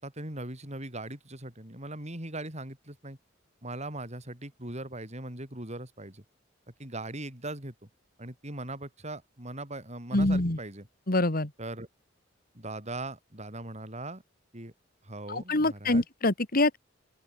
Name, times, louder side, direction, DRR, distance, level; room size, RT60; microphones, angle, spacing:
voice 1, 0.0-3.2 3.6-6.2 6.8-7.9 8.2-10.9 11.6-11.9 12.5-14.2 14.5-14.7 15.0-16.0, right 2 dB, 35° right, 6.6 m, -40 dB
voice 2, 10.1-10.6 11.1-11.5 15.3-16.8, left 2 dB, 50° left, 2.2 m, -25 dB
open air
head